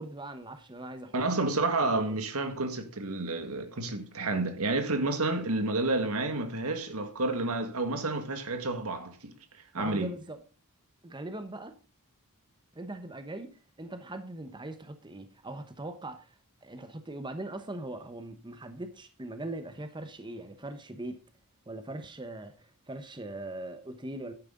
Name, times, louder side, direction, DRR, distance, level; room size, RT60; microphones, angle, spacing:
voice 1, 0.0-1.2 1.8-2.2 9.8-10.4 11.0-11.7 12.7-13.5 13.8-21.2 21.7-24.3, right 2 dB, 20° right, 1.0 m, -41 dB
voice 2, 1.1-9.3 9.7-10.1, right 2 dB, 70° right, 1.9 m, -30 dB
11.0 x 9.7 x 3.8 m
head